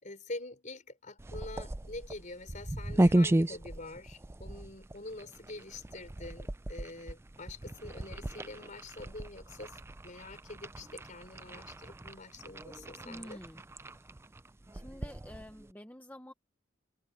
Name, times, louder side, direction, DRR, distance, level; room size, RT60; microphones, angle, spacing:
voice 1, 0.0-9.8 10.0-13.4, left 2 dB, 40° left, 4.8 m, -45 dB
sound 1, 1.2-15.7, right 1 dB, 15° right, 0.4 m, -35 dB
voice 2, 13.0-13.6 14.7-16.3, equal, 10° left, 1.1 m, -48 dB
head